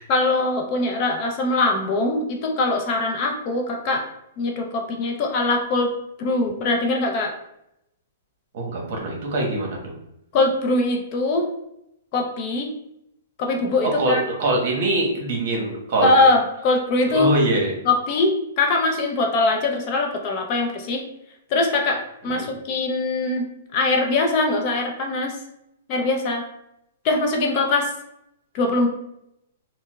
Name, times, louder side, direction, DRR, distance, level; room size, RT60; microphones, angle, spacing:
voice 1, 0.1-4.0 4.4-5.9 6.2-7.3 10.3-11.5 12.1-12.7 13.4-14.2 16.0-17.3 17.9-21.0 21.5-22.0 22.2-23.5 23.7-25.3 25.9-26.4 27.0-27.9 28.5-28.9, left 2 dB, 35° left, 2 dB, 0.4 m, -22 dB
voice 2, 8.5-9.9 13.8-16.1 17.1-17.7 22.2-22.5, right 1 dB, 50° right, 0 dB, 0.9 m, -23 dB
4.4 x 2.0 x 2.3 m, 0.81 s
hypercardioid pair, 160°, 0 cm